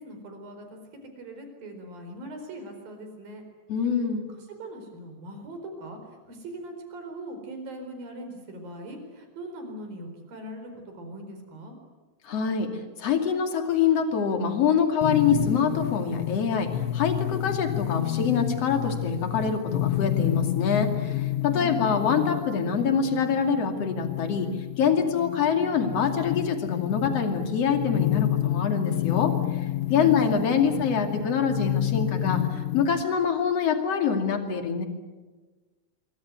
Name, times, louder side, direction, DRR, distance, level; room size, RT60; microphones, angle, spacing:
voice 1, 0.0-3.4 4.2-6.0 6.3-11.8 21.5-21.8 29.9-31.1, right 1 dB, 50° right, 5 dB, 5.9 m, -40 dB
voice 2, 3.7-4.2 12.2-12.7 13.0-24.5 24.8-29.3 29.9-34.8, left 6 dB, 40° left, 6 dB, 2.9 m, -25 dB
sound 1, 15.0-33.0, left 14 dB, 80° left, 3.3 m, -29 dB
26.5 x 23.5 x 9.5 m, 1.3 s
omnidirectional pair, 5.2 m